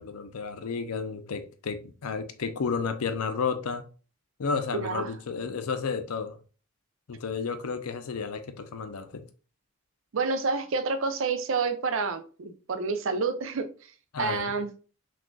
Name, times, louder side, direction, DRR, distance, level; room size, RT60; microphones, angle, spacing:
voice 1, 0.0-3.8 4.4-6.4 7.1-9.2 14.1-14.4, left 5 dB, 85° left, 0.5 m, -32 dB
voice 2, 4.7-5.1 10.1-13.9 14.2-14.7, right 4 dB, 60° right, 0.4 m, -29 dB
6.1 x 2.4 x 2.3 m
head